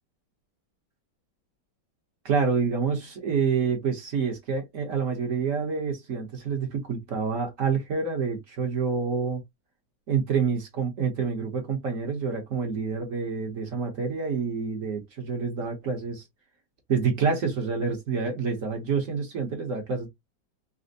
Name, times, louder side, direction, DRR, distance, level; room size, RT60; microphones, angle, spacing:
voice 1, 2.2-9.4 10.1-16.2 16.9-20.1, right 5 dB, 50° right, 1.1 m, -27 dB
4.3 x 2.1 x 2.6 m
omnidirectional pair, 2.1 m